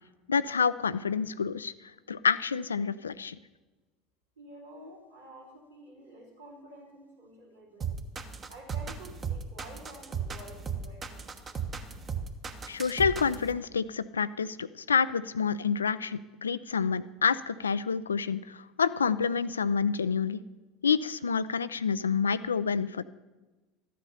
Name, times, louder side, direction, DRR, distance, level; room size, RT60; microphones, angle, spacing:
voice 1, 0.3-1.7 2.1-3.4 12.7-20.4 20.8-23.0, left 6 dB, 85° left, 16 dB, 0.3 m, -28 dB
voice 2, 4.4-8.0 8.5-11.4, right 1 dB, 85° right, -3 dB, 2.9 m, -50 dB
sound 1, 7.8-13.5, right 6 dB, 30° right, 1.1 m, -35 dB
13.0 x 8.5 x 5.6 m, 1.2 s
hypercardioid pair, 70°, 0 cm